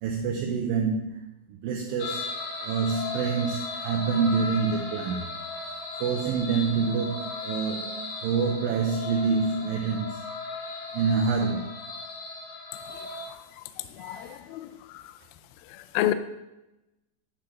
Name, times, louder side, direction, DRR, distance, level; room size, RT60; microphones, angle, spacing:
voice 1, 0.0-2.3 2.6-5.3 6.0-10.2 10.9-11.7 14.0-14.5, right 5 dB, 80° right, 1 dB, 2.1 m, -27 dB
sound 1, 2.0-13.2, left 3 dB, 55° left, 2.3 m, -36 dB
voice 2, 14.0-14.7 16.0-16.1, left 13 dB, 90° left, 10 dB, 2.0 m, -27 dB
9.9 x 3.8 x 5.8 m, 0.94 s
omnidirectional pair, 4.7 m